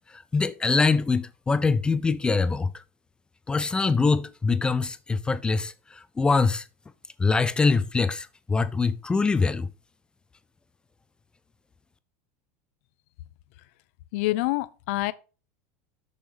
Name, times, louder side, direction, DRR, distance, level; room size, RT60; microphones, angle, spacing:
voice 1, 0.1-2.8 3.5-6.7 7.2-9.7, left 4 dB, 10° left, 0.4 m, -24 dB
voice 2, 14.1-15.1, left 19 dB, 65° left, 0.6 m, -26 dB
6.5 x 6.2 x 5.1 m
supercardioid pair, 140°, 7 cm